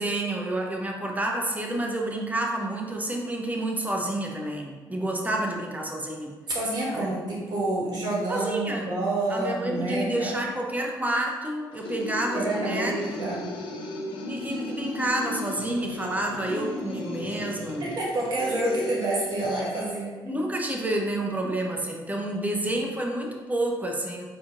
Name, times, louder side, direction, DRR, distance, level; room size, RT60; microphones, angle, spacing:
voice 1, 0.0-6.3 6.9-7.1 8.3-9.0 9.3-13.2 14.3-17.9 20.2-24.3, right 1 dB, 20° right, 1 dB, 0.6 m, -29 dB
voice 2, 6.5-10.3 12.3-13.4 17.8-20.1, right 2 dB, 55° right, -5 dB, 1.5 m, -28 dB
sound 1, 11.7-19.9, left 1 dB, 75° left, 0.5 m, -35 dB
4.1 x 2.9 x 2.5 m, 1.4 s
supercardioid pair, 65°, 9 cm